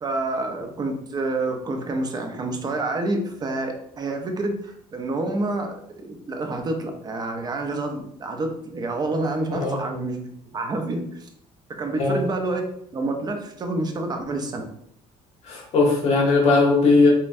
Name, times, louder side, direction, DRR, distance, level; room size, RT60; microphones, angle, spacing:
voice 1, 0.0-11.3 11.7-14.7, right 2 dB, 30° right, 4 dB, 0.6 m, -28 dB
voice 2, 15.4-17.1, left 3 dB, 55° left, -2 dB, 1.1 m, -18 dB
5.2 x 2.2 x 2.6 m, 0.71 s
cardioid pair, 120°, 13 cm